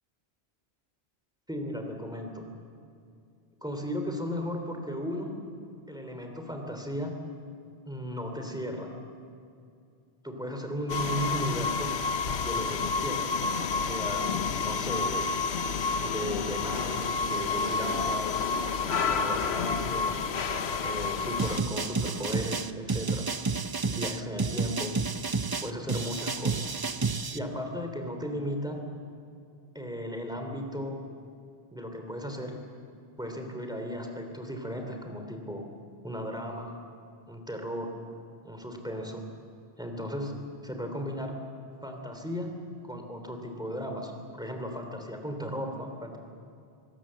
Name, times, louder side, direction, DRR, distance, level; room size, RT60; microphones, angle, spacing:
voice 1, 1.5-2.5 3.6-5.3 5.9-7.1 7.9-8.9 10.2-11.9 12.4-13.4 13.7-15.3 16.0-18.4 19.1-20.2 20.8-23.3 23.8-24.9 25.6-26.6 27.3-28.8 29.7-31.0 31.7-32.5 33.2-35.6 36.0-36.7 37.3-37.9 38.4-39.2 39.8-40.3 40.6-41.3 41.8-42.5 42.8-46.2, equal, 5° right, 4 dB, 3.1 m, -36 dB
sound 1, 10.9-21.6, left 5 dB, 90° left, 1.2 m, -29 dB
sound 2, 21.4-27.4, right 4 dB, 30° right, 0.5 m, -30 dB
25.0 x 18.5 x 7.6 m, 2.4 s
omnidirectional pair, 1.1 m